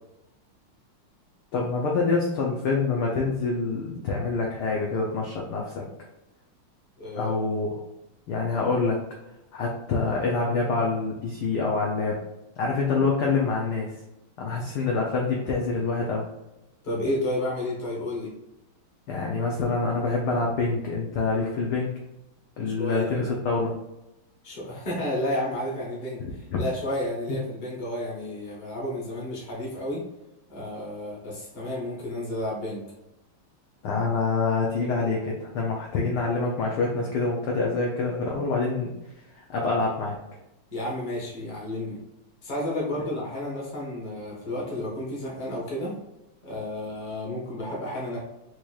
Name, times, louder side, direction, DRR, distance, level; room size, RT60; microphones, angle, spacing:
voice 1, 1.5-5.8 7.1-7.7 8.3-9.0 9.5-12.2 12.6-13.9 14.4-16.3 19.1-21.9 22.6-23.7 26.2-26.6 33.8-38.9 39.4-40.2, left 4 dB, 75° left, -2 dB, 0.9 m, -26 dB
voice 2, 7.0-7.4 16.8-18.3 22.7-23.3 24.4-30.0 30.5-32.8 40.7-42.0 42.4-45.9 46.4-48.2, left 1 dB, 30° left, -4 dB, 0.9 m, -31 dB
4.5 x 2.9 x 2.3 m, 0.93 s
omnidirectional pair, 2.4 m